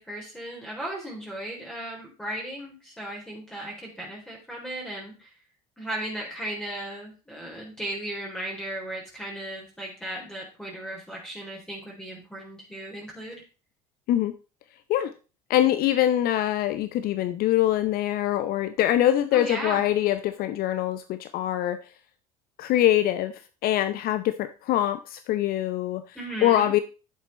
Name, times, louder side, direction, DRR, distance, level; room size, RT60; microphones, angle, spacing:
voice 1, 0.0-5.3 5.8-13.4 19.3-19.8 26.2-26.7, right 1 dB, 5° left, 3.8 m, -36 dB
voice 2, 15.5-21.8 22.6-26.8, left 12 dB, 50° left, 0.6 m, -24 dB
10.0 x 7.4 x 4.1 m
figure-of-eight pair, 65°, 20 cm